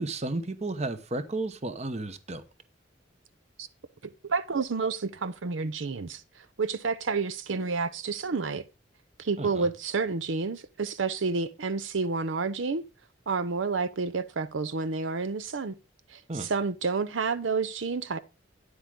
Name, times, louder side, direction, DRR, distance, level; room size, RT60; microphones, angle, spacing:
voice 1, 0.0-2.4 9.4-9.7 16.3-16.5, right 2 dB, 35° right, 1.0 m, -33 dB
voice 2, 4.3-6.2 6.6-8.6 9.2-12.8 13.3-15.7 16.1-18.2, right 4 dB, 85° right, 0.7 m, -29 dB
9.6 x 8.1 x 3.8 m
head